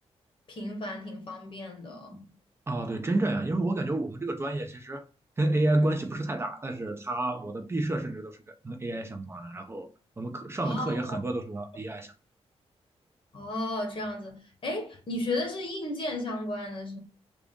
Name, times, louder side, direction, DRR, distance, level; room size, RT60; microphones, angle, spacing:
voice 1, 0.5-2.2 10.6-11.2 13.3-17.0, left 1 dB, 50° left, 1.3 m, -34 dB
voice 2, 2.7-5.0 5.4-8.3 8.6-9.9 10.2-12.1, right 2 dB, 20° right, 0.6 m, -30 dB
3.6 x 2.4 x 3.6 m
wide cardioid pair, 125°, 11 cm